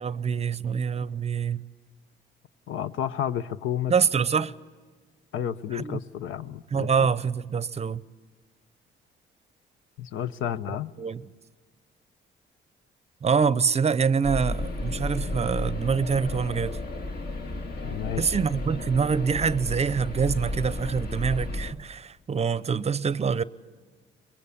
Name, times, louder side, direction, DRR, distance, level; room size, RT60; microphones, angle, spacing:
voice 1, 0.0-1.6 3.9-4.5 5.7-6.0 6.7-8.0 11.0-11.2 13.2-16.8 18.2-23.4, right 6 dB, 30° right, 0.6 m, -25 dB
voice 2, 2.7-3.9 5.3-7.1 10.0-10.9 17.8-18.4, left 10 dB, 85° left, 0.8 m, -31 dB
sound 1, 14.2-21.7, left 2 dB, 50° left, 1.7 m, -33 dB
23.5 x 22.0 x 8.6 m
cardioid pair, 90°, 20 cm